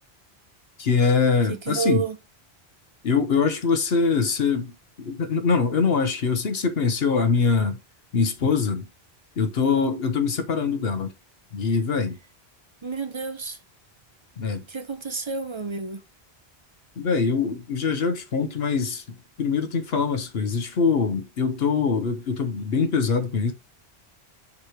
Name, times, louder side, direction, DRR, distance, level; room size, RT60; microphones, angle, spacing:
voice 1, 0.8-2.0 3.0-4.7 5.0-7.8 8.1-8.8 9.4-11.1 11.5-12.2 14.4-14.6 17.0-19.0 19.4-23.5, left 5 dB, 70° left, 1.1 m, -23 dB
voice 2, 1.5-2.2 12.8-13.6 14.7-16.0, right 5 dB, 30° right, 0.6 m, -30 dB
7.2 x 3.2 x 5.0 m
omnidirectional pair, 1.1 m